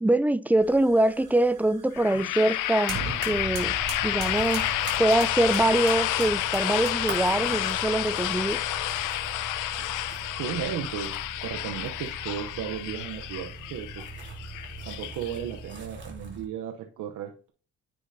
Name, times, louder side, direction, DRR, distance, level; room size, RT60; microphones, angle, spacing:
voice 1, 0.0-3.7 4.0-4.6 5.0-8.6, right 1 dB, 5° right, 0.4 m, -24 dB
sound 1, 0.6-7.3, right 4 dB, 55° right, 2.7 m, -41 dB
sound 2, 1.9-15.7, left 14 dB, 90° left, 0.6 m, -30 dB
sound 3, 3.2-16.5, right 3 dB, 40° right, 3.0 m, -41 dB
voice 2, 10.4-14.1 14.8-17.5, right 9 dB, 85° right, 0.8 m, -35 dB
9.5 x 6.7 x 2.6 m
cardioid pair, 90°, 30 cm